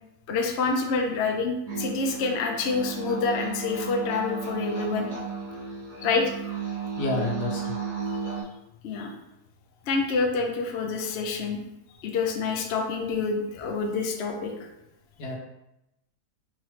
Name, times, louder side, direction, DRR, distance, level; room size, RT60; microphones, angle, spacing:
voice 1, 0.3-5.1 6.0-6.3 8.8-9.1 9.9-11.6 12.0-14.5, left 4 dB, 60° left, 2 dB, 0.7 m, -27 dB
sound 1, 1.7-8.4, right 5 dB, 65° right, 2.1 m, -34 dB
voice 2, 7.0-7.8 15.2-15.4, left 2 dB, 80° left, 0 dB, 1.4 m, -29 dB
4.9 x 3.1 x 3.1 m, 0.87 s
omnidirectional pair, 1.7 m